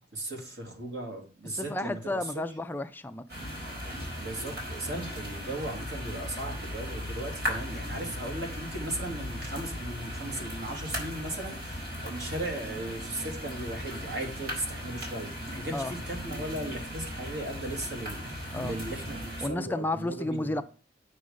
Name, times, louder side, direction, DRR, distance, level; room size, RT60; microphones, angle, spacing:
voice 1, 0.1-2.4 4.2-20.6, right 1 dB, 75° right, 2.7 m, -37 dB
voice 2, 1.5-3.2 15.7-15.9 18.5-18.7 19.4-20.6, left 2 dB, 10° left, 0.4 m, -32 dB
sound 1, 3.3-19.5, equal, 60° right, 4.2 m, -37 dB
8.6 x 6.5 x 5.1 m
head